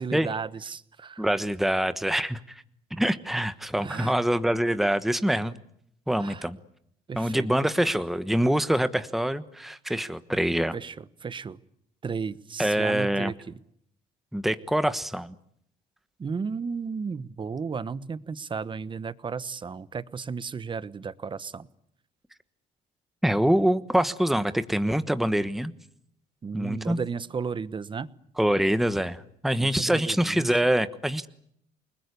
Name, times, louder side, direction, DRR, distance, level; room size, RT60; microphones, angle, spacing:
voice 1, 0.0-1.2 3.8-4.1 6.2-6.5 7.1-7.5 10.7-11.6 12.0-13.4 16.2-21.7 26.4-28.1 29.6-30.5, right 5 dB, 30° right, 16 dB, 1.2 m, -34 dB
voice 2, 1.2-2.4 2.9-5.5 6.1-6.6 7.1-10.7 12.6-13.3 14.3-15.3 23.2-25.7 26.5-27.0 28.4-31.3, right 1 dB, ahead, 12 dB, 1.2 m, -25 dB
28.5 x 20.5 x 9.7 m, 0.71 s
cardioid pair, 110°, 17 cm